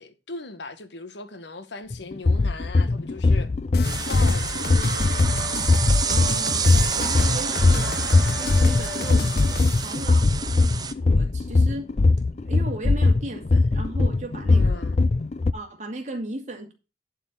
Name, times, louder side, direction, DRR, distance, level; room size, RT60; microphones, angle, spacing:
voice 1, 0.0-3.5 4.1-4.7 14.5-15.0, left 3 dB, 75° left, 1.2 m, -38 dB
sound 1, 1.9-15.5, left 3 dB, 35° left, 0.4 m, -21 dB
sound 2, 3.7-10.0, left 3 dB, 55° left, 0.9 m, -32 dB
sound 3, 3.8-10.9, right 6 dB, 20° right, 0.6 m, -29 dB
voice 2, 6.1-6.7 6.9-8.0 8.3-9.3 9.7-10.7 10.9-11.9 12.5-14.8 15.5-16.7, right 1 dB, 40° right, 2.3 m, -36 dB
11.0 x 4.4 x 6.7 m
head